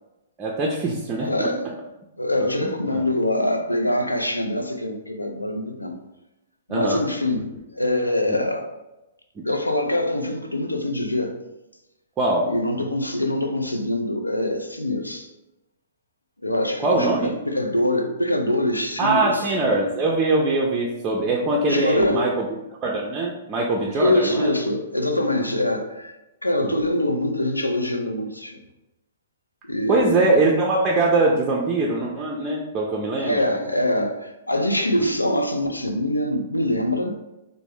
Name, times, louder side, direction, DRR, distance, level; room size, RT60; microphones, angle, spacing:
voice 1, 0.4-1.5 2.6-3.0 6.7-7.0 8.3-8.4 9.4-9.5 12.2-12.5 12.8-12.9 16.8-17.3 19.0-22.5 22.8-24.6 25.4-25.5 26.6-26.7 29.9-33.6 35.0-35.1, right 2 dB, 20° right, -2 dB, 0.4 m, -22 dB
voice 2, 1.2-1.7 2.2-6.0 6.7-8.7 9.4-11.3 12.4-15.3 16.4-19.5 21.6-22.3 23.9-26.1 26.4-28.6 29.6-30.3 33.2-37.1, left 1 dB, 90° left, 4 dB, 0.4 m, -24 dB
3.3 x 2.0 x 3.3 m, 0.96 s
figure-of-eight pair, 110°, 0 cm